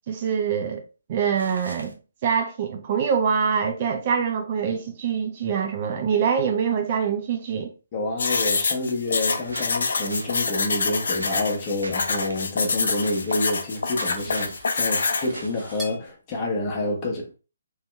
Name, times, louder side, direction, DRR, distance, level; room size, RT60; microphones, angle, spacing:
voice 1, 0.1-0.8 1.1-1.9 2.2-7.7 14.0-14.1, right 7 dB, 35° right, 0.4 m, -24 dB
sound 1, 1.4-1.9 9.5-10.5 11.1-12.4 13.0-13.7 13.9-14.7 15.1-16.1, right 1 dB, 75° right, 0.8 m, -41 dB
voice 2, 7.9-17.3, left 2 dB, 25° left, 1.0 m, -28 dB
sound 2, 8.2-15.3, left 4 dB, 55° left, 0.4 m, -26 dB
Cutlery silverware, 13.0-16.0, equal, 10° right, 0.8 m, -44 dB
3.2 x 2.8 x 3.2 m
figure-of-eight pair, 140°, 0 cm